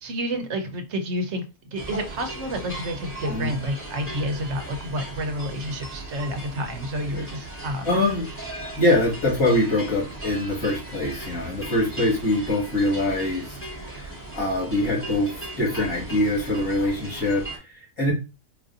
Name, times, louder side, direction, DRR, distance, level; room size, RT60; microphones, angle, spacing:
voice 1, 0.0-8.0, equal, 60° right, 0.9 m, -30 dB
sound 1, 1.8-17.6, right 2 dB, 10° left, 1.0 m, -37 dB
voice 2, 3.3-3.6 7.8-8.3 8.8-13.6 13.8-18.1, left 1 dB, 80° left, 2.2 m, -24 dB
4.7 x 2.6 x 2.5 m
omnidirectional pair, 1.5 m